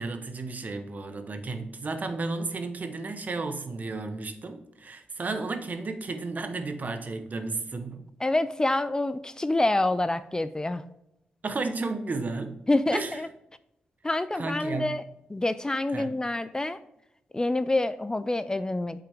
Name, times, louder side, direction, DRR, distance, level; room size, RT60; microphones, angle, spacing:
voice 1, 0.0-8.1 11.4-12.6 12.9-13.2 14.3-15.0 15.9-16.2, right 3 dB, 45° right, 8 dB, 1.0 m, -33 dB
voice 2, 8.2-10.8 12.7-13.3 14.0-15.0 15.3-16.8 17.3-19.0, left 2 dB, 20° left, 13 dB, 0.4 m, -27 dB
8.2 x 5.8 x 3.5 m, 0.83 s
cardioid pair, 60°, 4 cm